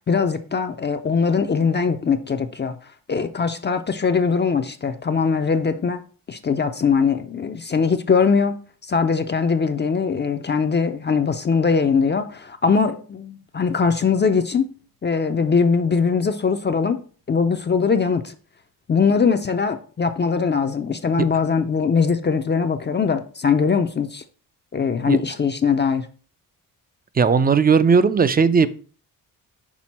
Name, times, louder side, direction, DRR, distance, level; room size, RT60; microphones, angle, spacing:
voice 1, 0.1-2.8 3.1-8.6 8.8-14.7 15.0-17.0 17.3-18.3 18.9-24.2 24.7-26.1, left 5 dB, 30° left, 0.5 m, -21 dB
voice 2, 27.2-28.7, right 5 dB, 25° right, 0.5 m, -16 dB
6.1 x 4.2 x 4.2 m
cardioid pair, 90°, 37 cm